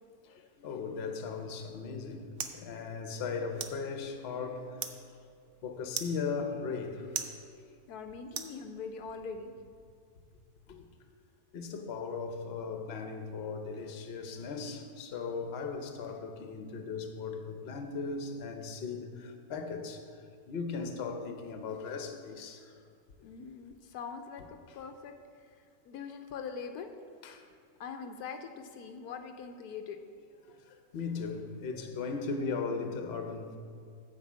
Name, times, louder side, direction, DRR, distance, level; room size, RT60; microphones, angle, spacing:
voice 1, 0.2-2.3 2.5-5.2 5.6-7.3 7.5-7.7 10.7-10.8 11.5-20.2 20.5-22.8 24.7-24.8 27.2-27.5 30.4-33.6, left 4 dB, 50° left, 5 dB, 0.9 m, -38 dB
sound 1, 1.6-9.1, right 7 dB, 65° right, 0.5 m, -44 dB
voice 2, 7.9-9.5 23.2-25.2 25.9-26.9 27.8-30.0, left 5 dB, 75° left, 6 dB, 1.1 m, -42 dB
9.2 x 5.0 x 7.4 m, 2.3 s
omnidirectional pair, 1.7 m